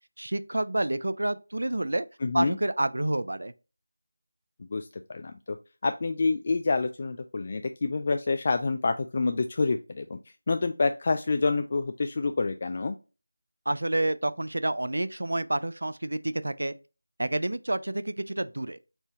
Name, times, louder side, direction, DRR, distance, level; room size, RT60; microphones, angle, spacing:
voice 1, 0.2-2.1 2.3-3.5 13.7-16.7 17.2-18.8, right 1 dB, 70° right, 0.4 m, -29 dB
voice 2, 2.2-2.6 4.6-5.6 5.8-10.2 10.5-13.0, left 3 dB, 35° left, 0.3 m, -27 dB
4.2 x 3.4 x 2.9 m
figure-of-eight pair, 170°, 0 cm